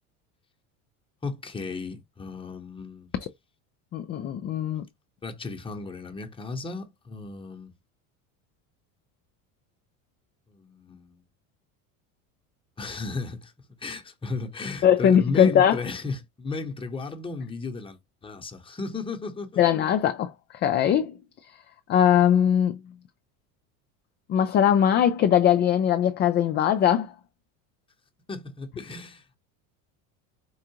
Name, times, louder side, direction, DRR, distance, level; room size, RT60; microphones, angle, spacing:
voice 1, 1.2-3.1 5.2-7.7 10.5-11.2 12.8-13.5 13.8-19.6 28.3-29.4, left 3 dB, 15° left, 0.9 m, -35 dB
voice 2, 3.9-4.8 14.8-15.8 19.6-20.3 20.6-21.1 21.9-22.8 24.3-27.1, left 9 dB, 30° left, 0.4 m, -20 dB
4.6 x 2.4 x 2.8 m
supercardioid pair, 105°, 40 cm